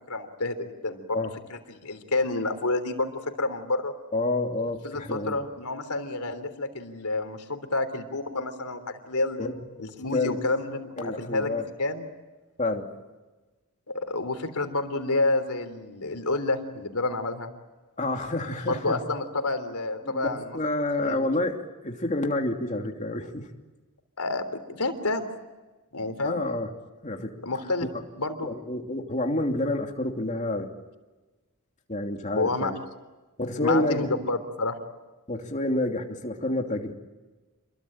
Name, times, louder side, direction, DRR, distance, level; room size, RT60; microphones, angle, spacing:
voice 1, 0.1-1.2 1.5-3.1 3.4-3.9 4.8-9.5 9.8-11.5 11.8-12.1 13.9-17.5 18.7-20.6 21.0-21.3 24.2-25.2 25.9-26.4 27.4-27.9 28.2-28.5 32.4-32.7 33.6-34.8, left 2 dB, 90° left, 8 dB, 3.4 m, -29 dB
voice 2, 4.1-5.4 9.4-10.4 11.0-11.7 12.6-12.9 18.0-19.0 20.0-23.5 26.2-26.7 27.0-27.4 27.8-27.9 28.4-30.7 31.9-32.8 33.4-34.1 35.3-36.9, left 2 dB, 35° left, 3 dB, 2.9 m, -29 dB
28.5 x 22.5 x 8.9 m, 1.2 s
head